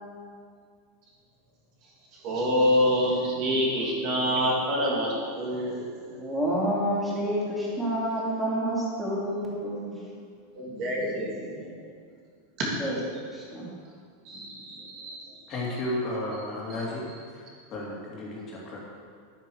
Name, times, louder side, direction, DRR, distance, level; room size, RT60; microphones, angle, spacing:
voice 1, 2.2-5.8 10.5-11.8 14.2-15.2, equal, 35° right, -3 dB, 2.9 m, -26 dB
voice 2, 6.1-10.0 12.8-13.0 13.3-13.7, equal, ahead, -7 dB, 3.1 m, -28 dB
voice 3, 15.5-17.1 17.3-18.8, left 1 dB, 25° left, -5 dB, 3.0 m, -33 dB
11.0 x 9.5 x 6.5 m, 2.1 s
supercardioid pair, 165°, 0 cm